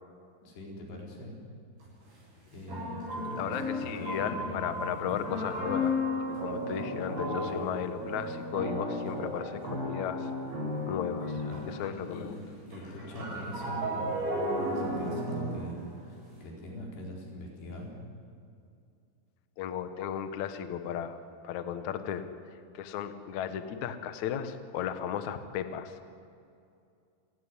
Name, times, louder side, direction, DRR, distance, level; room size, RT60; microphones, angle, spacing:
voice 1, 0.4-1.4 2.5-4.7 7.5-7.7 11.3-12.4 12.7-17.9, left 1 dB, 85° left, -1 dB, 6.7 m, -43 dB
sound 1, 1.8-1.9 2.7-12.2 12.5-16.4, left 1 dB, 80° right, 9.8 m, -34 dB
voice 2, 3.4-10.3 10.9-11.3 11.7-12.3 19.6-21.2 21.4-22.2 22.7-26.0, left 9 dB, 65° left, 9 dB, 2.0 m, -35 dB
28.5 x 17.0 x 9.8 m, 2.4 s
omnidirectional pair, 4.7 m